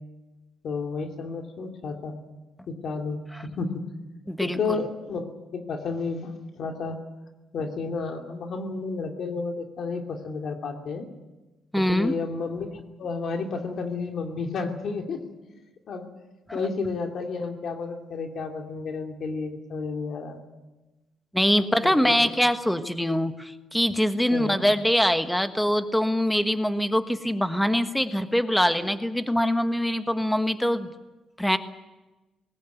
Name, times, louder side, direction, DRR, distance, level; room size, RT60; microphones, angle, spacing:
voice 1, 0.6-2.1 2.7-3.8 4.4-7.0 7.5-11.1 11.7-15.6 15.9-16.1 16.5-20.4 21.8-22.2 24.3-24.6, left 4 dB, 60° left, 3 dB, 2.7 m, -31 dB
voice 2, 4.3-4.8 11.7-12.2 16.5-16.6 21.3-30.9 31.4-31.6, equal, 5° left, 9 dB, 1.3 m, -23 dB
20.0 x 18.0 x 9.4 m, 1.1 s
cardioid pair, 115°, 0 cm